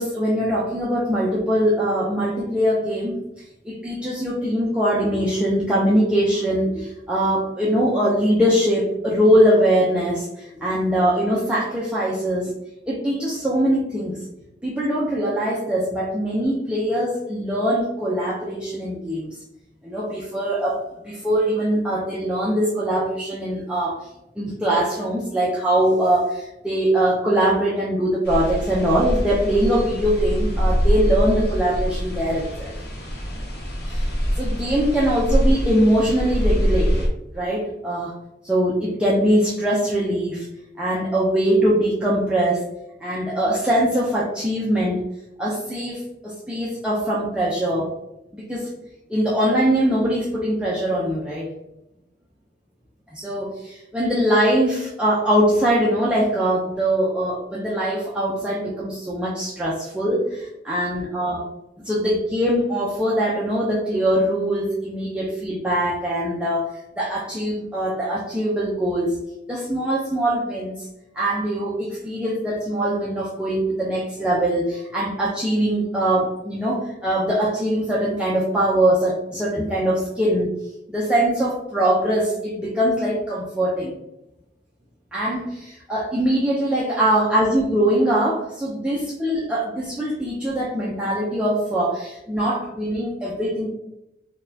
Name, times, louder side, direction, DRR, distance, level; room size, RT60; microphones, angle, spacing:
voice 1, 0.0-3.2 3.6-12.5 12.9-14.1 14.6-19.3 19.8-24.1 24.4-32.7 33.9-34.1 34.4-37.0 37.3-38.1 38.4-40.5 40.8-42.6 43.0-45.0 45.4-47.9 48.3-48.7 49.1-51.5 53.1-61.5 61.8-69.2 69.5-70.9 71.1-80.5 80.9-83.9 85.1-93.7, right 1 dB, 5° right, -6 dB, 0.4 m, -22 dB
sound 1, 28.3-37.1, equal, 60° left, 1.0 m, -24 dB
4.0 x 2.2 x 2.6 m, 0.90 s
head